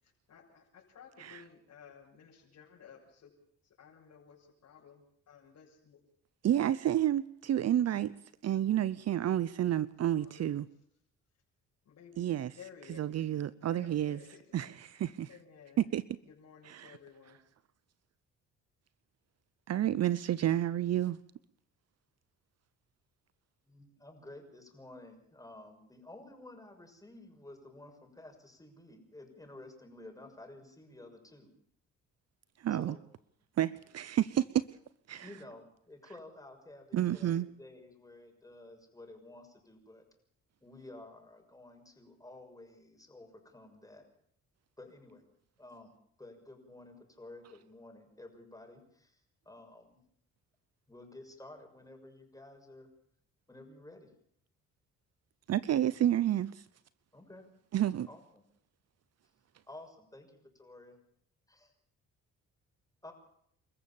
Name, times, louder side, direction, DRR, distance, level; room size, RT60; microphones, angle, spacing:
voice 1, 0.0-3.3 3.6-6.0 7.8-8.0 10.2-10.6 11.8-12.3 12.5-13.1 13.7-14.7 15.3-15.8 16.3-17.4, left 7 dB, 65° left, 6.8 m, -55 dB
voice 2, 6.4-8.1 8.4-10.7 12.2-12.6 12.9-14.2 14.5-15.3 15.8-16.1 16.6-17.0 19.7-21.2 32.6-33.0 33.6-34.7 35.1-35.4 36.9-37.5 55.5-56.7 57.7-58.1, right 11 dB, 55° right, 0.8 m, -30 dB
voice 3, 23.6-31.5 32.8-33.0 35.2-40.1 40.6-44.0 44.8-45.2 45.6-50.0 50.9-52.9 53.5-54.1 57.1-57.5 58.1-58.2 59.7-61.0 61.5-61.7 63.0-63.1, left 2 dB, 10° left, 6.4 m, -52 dB
28.5 x 14.5 x 7.2 m
cardioid pair, 90°, 30 cm